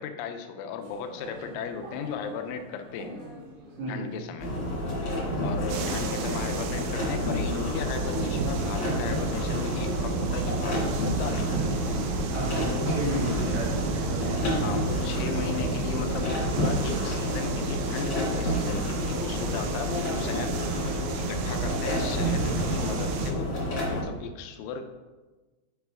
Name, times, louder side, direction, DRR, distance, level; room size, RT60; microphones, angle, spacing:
voice 1, 0.0-3.2 3.9-4.5 5.4-11.7 14.6-20.6 21.2-23.5 23.9-24.9, left 6 dB, 80° left, 7 dB, 2.9 m, -36 dB
sound 1, 0.8-12.7, left 1 dB, 45° right, 2.4 m, -46 dB
voice 2, 3.8-4.1 5.3-5.5 12.3-14.5, right 1 dB, 65° right, -4 dB, 1.8 m, -33 dB
sound 2, 4.4-24.0, equal, 40° left, 1.7 m, -29 dB
sound 3, 5.7-23.3, right 5 dB, 85° right, 2.4 m, -33 dB
9.2 x 5.9 x 3.4 m, 1.2 s
omnidirectional pair, 5.7 m